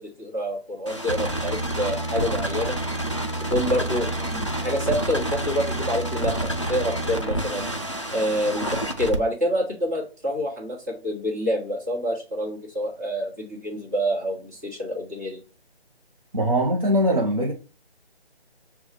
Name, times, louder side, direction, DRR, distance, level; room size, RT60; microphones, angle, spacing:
voice 1, 0.0-2.8 3.5-7.7 8.1-15.4, equal, 15° right, 1.2 m, -27 dB
sound 1, 0.9-9.2, right 1 dB, 30° left, 0.4 m, -28 dB
voice 2, 16.3-17.5, equal, 35° right, 0.7 m, -21 dB
6.9 x 2.3 x 3.3 m
figure-of-eight pair, 165°, 32 cm